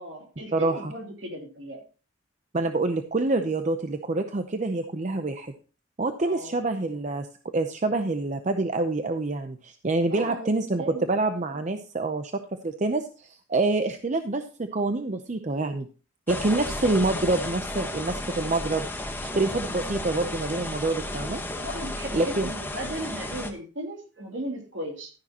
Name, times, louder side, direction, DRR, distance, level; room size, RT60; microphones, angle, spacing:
voice 1, 0.0-1.8 6.2-6.6 10.1-11.1 16.8-17.1 21.6-25.1, right 1 dB, 65° right, 1 dB, 2.9 m, -36 dB
voice 2, 0.5-0.9 2.5-5.5 6.0-15.9 16.3-18.9 19.2-21.4 22.1-22.5, right 2 dB, 35° right, 7 dB, 0.6 m, -27 dB
sound 1, 16.3-23.5, left 1 dB, 10° left, 1.2 m, -33 dB
12.5 x 10.0 x 2.9 m, 0.36 s
head